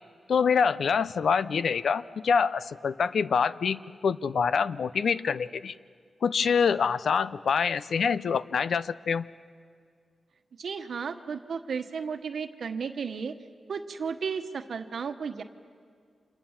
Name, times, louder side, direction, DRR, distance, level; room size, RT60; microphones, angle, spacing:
voice 1, 0.3-5.7 6.2-9.3, left 6 dB, 75° left, 16 dB, 0.6 m, -26 dB
voice 2, 10.6-13.3 13.7-15.4, right 6 dB, 70° right, 8 dB, 1.1 m, -34 dB
30.0 x 27.0 x 7.2 m, 2.1 s
cardioid pair, 85°, 0 cm